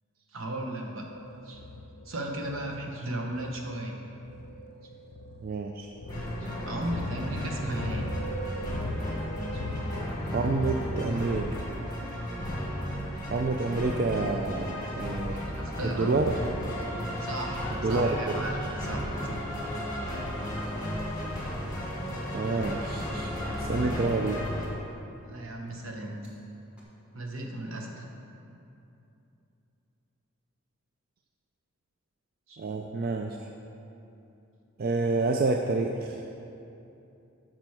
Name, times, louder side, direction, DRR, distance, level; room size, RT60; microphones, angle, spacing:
voice 1, 0.3-1.1 1.4-1.6 2.0-3.9 6.4-8.1 9.5-9.6 15.2-16.1 17.2-19.4 25.2-26.3 27.1-28.1 32.5-32.6, right 1 dB, 70° right, 1 dB, 1.0 m, -36 dB
sound 1, 1.0-11.4, left 1 dB, 50° left, 0.5 m, -38 dB
voice 2, 5.4-5.9 10.3-11.5 13.3-15.4 15.8-16.3 17.8-18.4 20.8-20.9 22.3-24.5 32.6-33.4 34.8-36.2, right 3 dB, 45° right, 3 dB, 0.3 m, -28 dB
sound 2, 6.1-24.7, equal, 15° left, 1.4 m, -34 dB
sound 3, 20.2-23.1 24.4-24.5 26.2-26.3 26.8-26.9, right 2 dB, 5° right, 1.3 m, -49 dB
8.8 x 6.2 x 4.8 m, 2.8 s
head